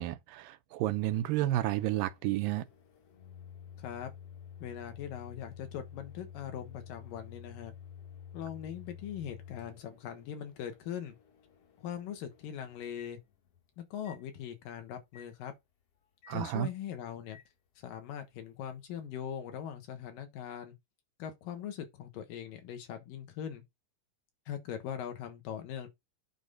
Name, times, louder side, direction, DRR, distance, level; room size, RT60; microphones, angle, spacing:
voice 1, 0.0-2.7 16.3-16.7, right 14 dB, 90° right, 2.4 m, -31 dB
Microwave oven, 1.1-13.6 14.1-14.2 15.1-15.3 16.2-16.4 17.3-17.5, left 8 dB, 55° left, 2.0 m, -51 dB
voice 2, 3.8-4.1 4.6-7.7 8.3-11.2 11.8-13.2 13.8-15.5 16.3-17.4 17.8-20.8 21.2-23.6 24.5-25.9, left 9 dB, 85° left, 2.9 m, -41 dB
9.0 x 3.6 x 5.5 m
omnidirectional pair, 3.9 m